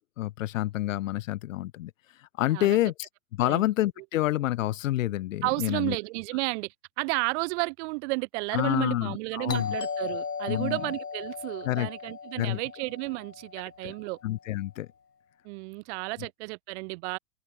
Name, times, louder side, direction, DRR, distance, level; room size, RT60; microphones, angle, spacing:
voice 1, 0.0-1.9 2.4-3.1 3.4-6.0 8.5-9.7 10.5-10.8 11.6-11.9 12.4-12.6 13.8-13.9 14.2-14.9, left 15 dB, 55° left, 1.2 m, -28 dB
voice 2, 5.4-14.2 15.4-17.2, right 27 dB, 45° right, 6.9 m, -32 dB
Doorbell, 9.5-14.1, left 5 dB, 85° left, 5.7 m, -37 dB
open air
hypercardioid pair, 115°, 46 cm